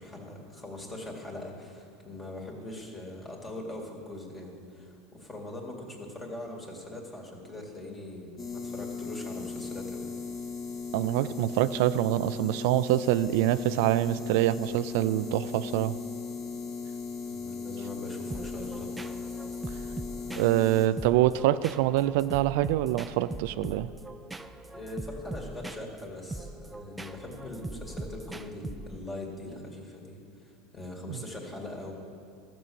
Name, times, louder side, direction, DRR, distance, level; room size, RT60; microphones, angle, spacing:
voice 1, 0.0-10.1 17.2-18.9 24.7-31.9, left 2 dB, 20° left, 0 dB, 2.2 m, -41 dB
sound 1, 8.4-20.9, left 4 dB, 45° left, 1.9 m, -37 dB
voice 2, 10.9-16.0 20.3-23.9 31.1-31.2, right 14 dB, 70° right, 15 dB, 0.4 m, -25 dB
sound 2, 18.3-29.2, right 2 dB, 10° right, 0.4 m, -41 dB
13.5 x 6.3 x 7.0 m, 2.4 s
supercardioid pair, 120°, 0 cm